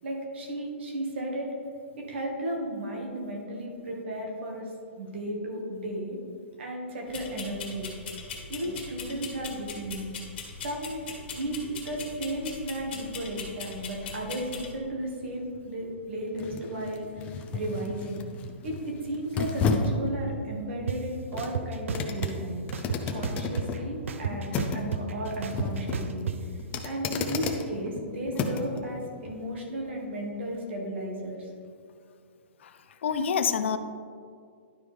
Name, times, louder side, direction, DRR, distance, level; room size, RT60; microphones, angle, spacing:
voice 1, 0.0-1.5 2.0-4.7 5.0-6.2 6.6-7.9 8.5-10.1 10.6-18.2 18.6-22.6 23.1-26.5 26.8-31.5, right 1 dB, 65° right, 0 dB, 1.8 m, -34 dB
sound 1, 7.1-14.7, left 5 dB, 50° left, 1.6 m, -40 dB
sound 2, 14.1-28.8 29.2-29.4, left 4 dB, 20° left, 0.5 m, -34 dB
sound 3, 20.9-21.0 21.4-22.3 22.7-23.8 24.1-26.4, right 6 dB, 85° right, 0.6 m, -31 dB
voice 2, 32.6-33.8, left 6 dB, 70° left, 10 dB, 0.5 m, -28 dB
11.5 x 4.8 x 3.5 m, 2.3 s
hypercardioid pair, 155°, 7 cm